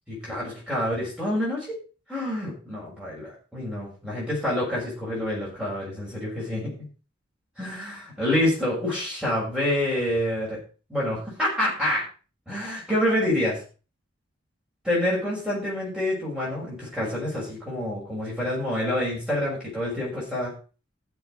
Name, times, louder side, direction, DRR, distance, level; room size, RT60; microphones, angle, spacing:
voice 1, 0.1-1.8 2.1-6.7 7.6-10.6 10.9-12.0 12.5-13.6 14.8-20.5, left 1 dB, 5° right, -7 dB, 6.1 m, -27 dB
15.5 x 6.6 x 5.1 m, 0.36 s
head